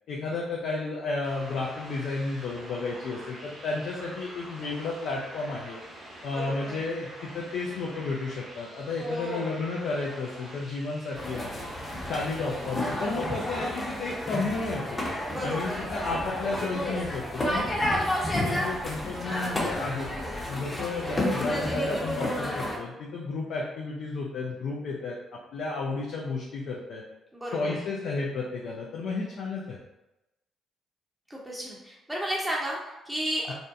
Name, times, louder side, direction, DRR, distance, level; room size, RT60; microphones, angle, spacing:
voice 1, 0.1-5.8 6.2-11.7 12.1-15.0 15.4-18.0 18.3-20.1 20.5-25.2 25.5-27.0 27.5-29.8 33.5-33.6, left 3 dB, 65° left, -3 dB, 0.4 m, -32 dB
sound 1, 1.2-14.9, right 1 dB, 60° right, 0.9 m, -46 dB
voice 2, 6.3-6.8 9.0-9.5 15.3-15.9 27.3-27.9 31.3-33.5, equal, 10° right, -4 dB, 0.6 m, -33 dB
sound 2, 11.1-22.8, left 1 dB, 30° left, 0.8 m, -31 dB
2.5 x 2.2 x 2.6 m, 0.97 s
hypercardioid pair, 45°, 0 cm